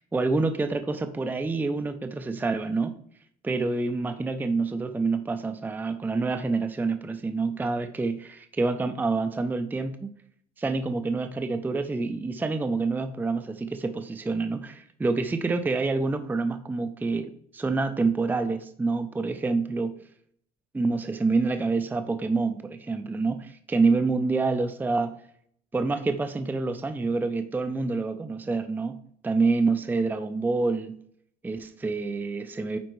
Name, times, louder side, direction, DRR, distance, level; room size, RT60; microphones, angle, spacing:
voice 1, 0.0-2.9 3.4-10.1 10.6-19.9 20.7-25.1 25.7-29.0 29.2-30.9 31.4-32.8, right 3 dB, 10° right, 9 dB, 0.4 m, -27 dB
9.3 x 4.3 x 3.1 m, 0.66 s
cardioid pair, 110°, 17 cm